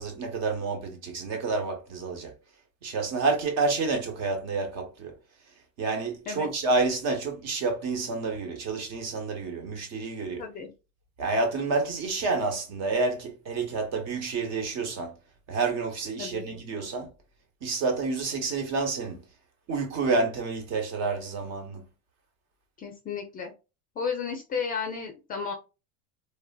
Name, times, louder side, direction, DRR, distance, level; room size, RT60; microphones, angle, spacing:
voice 1, 0.0-2.3 2.8-5.1 5.8-10.4 11.2-15.1 15.5-17.1 17.6-19.2 19.7-21.9, right 3 dB, 45° right, 1.1 m, -29 dB
voice 2, 10.4-10.7 16.2-16.4 22.8-23.5 24.0-25.5, left 6 dB, 25° left, 0.5 m, -33 dB
3.4 x 2.3 x 2.2 m
supercardioid pair, 150°, 37 cm